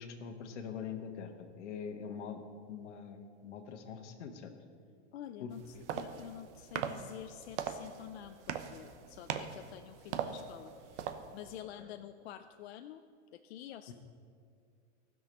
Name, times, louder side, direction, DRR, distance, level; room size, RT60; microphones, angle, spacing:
voice 1, 0.0-4.5 5.4-5.8 11.8-11.9 13.9-14.0, left 6 dB, 85° left, 7 dB, 1.3 m, -44 dB
voice 2, 5.1-13.0 13.3-13.9, left 11 dB, 65° left, 9 dB, 0.5 m, -48 dB
sound 1, 5.5-11.6, right 8 dB, 80° right, 0.8 m, -41 dB
15.5 x 6.3 x 5.2 m, 2.3 s
supercardioid pair, 175°, 35 cm